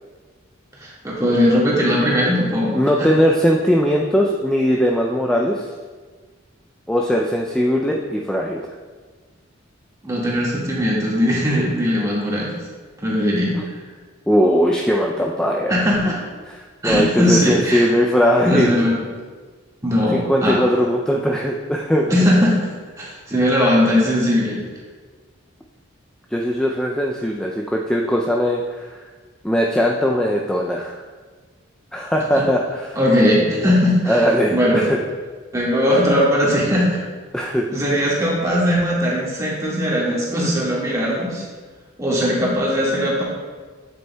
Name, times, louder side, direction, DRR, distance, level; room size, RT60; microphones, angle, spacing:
voice 1, 0.8-2.8 10.0-12.5 13.0-13.7 15.7-16.2 16.8-17.9 18.4-18.9 19.8-20.6 22.1-22.6 23.0-24.6 32.4-32.5 32.9-34.9 35.5-37.0 37.7-41.4 42.0-43.2, equal, 15° right, -6 dB, 1.7 m, -19 dB
voice 2, 2.7-5.7 6.9-8.6 14.3-15.8 16.5-18.8 20.1-22.1 26.3-29.0 29.4-31.0 31.9-33.0 34.1-35.0 37.3-37.7, equal, 5° left, -1 dB, 0.3 m, -19 dB
8.2 x 7.6 x 2.2 m, 1.4 s
head